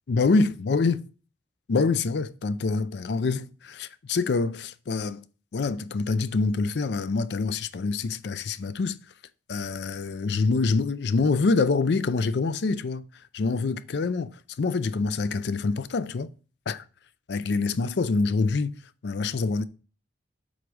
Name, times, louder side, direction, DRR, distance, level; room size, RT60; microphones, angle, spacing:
voice 1, 0.1-1.0 1.7-5.2 5.5-9.0 9.5-13.1 13.3-14.3 14.6-16.3 16.7-16.8 17.3-19.6, left 4 dB, 65° left, 0.4 m, -26 dB
7.9 x 4.0 x 4.9 m
head